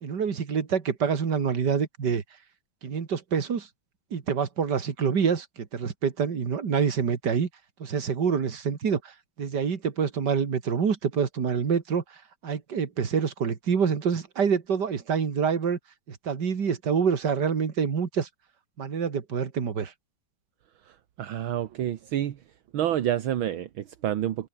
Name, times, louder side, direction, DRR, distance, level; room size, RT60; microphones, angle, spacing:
voice 1, 0.0-2.2 2.8-3.7 4.1-7.5 7.8-15.8 16.1-18.3 18.8-19.9, right 6 dB, 55° right, 2.6 m, -26 dB
voice 2, 20.9-22.4 22.7-24.5, right 11 dB, 70° right, 1.9 m, -29 dB
omnidirectional pair, 2.3 m